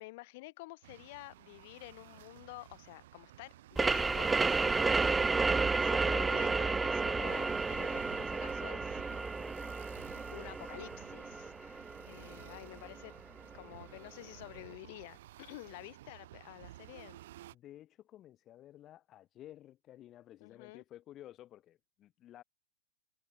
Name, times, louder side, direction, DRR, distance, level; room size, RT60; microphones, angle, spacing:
voice 1, 0.0-9.9 10.3-13.1 13.5-17.2 20.4-20.8, left 23 dB, 50° left, 4.9 m, -50 dB
sound 1, 0.8-17.6, right 14 dB, 65° right, 1.0 m, -54 dB
sound 2, 3.8-13.1, right 4 dB, 10° right, 0.4 m, -32 dB
voice 2, 17.5-22.4, left 13 dB, 30° left, 3.5 m, -54 dB
hypercardioid pair, 145°, 0 cm